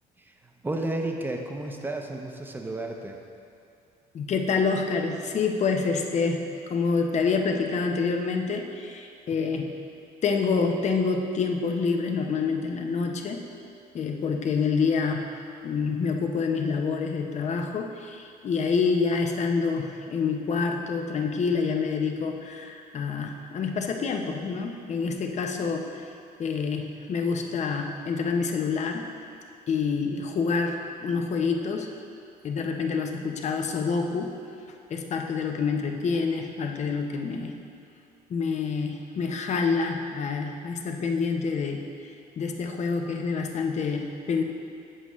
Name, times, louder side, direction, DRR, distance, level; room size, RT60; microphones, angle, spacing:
voice 1, 0.2-3.2, right 2 dB, 10° right, 2 dB, 0.7 m, -32 dB
voice 2, 4.1-9.7 10.2-13.4 13.9-15.3 15.6-26.1 26.4-29.1 29.7-31.9 32.4-34.4 34.9-37.6 38.3-41.8 42.4-44.4, left 5 dB, 45° left, 3 dB, 0.7 m, -27 dB
8.1 x 7.5 x 3.1 m, 2.6 s
cardioid pair, 110°, 17 cm